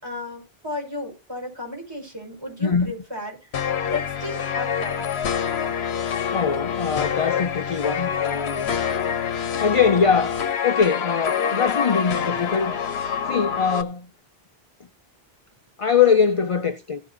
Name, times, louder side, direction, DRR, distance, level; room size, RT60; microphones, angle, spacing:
voice 1, 0.0-3.6 3.9-5.2, left 2 dB, 25° right, 5.3 m, -34 dB
voice 2, 2.6-2.9 6.3-8.7 9.6-12.8 13.2-14.1 15.8-17.0, left 6 dB, 40° left, 0.6 m, -22 dB
sound 1, 3.5-13.8, left 7 dB, 85° left, 1.2 m, -26 dB
16.0 x 8.9 x 2.7 m
omnidirectional pair, 1.1 m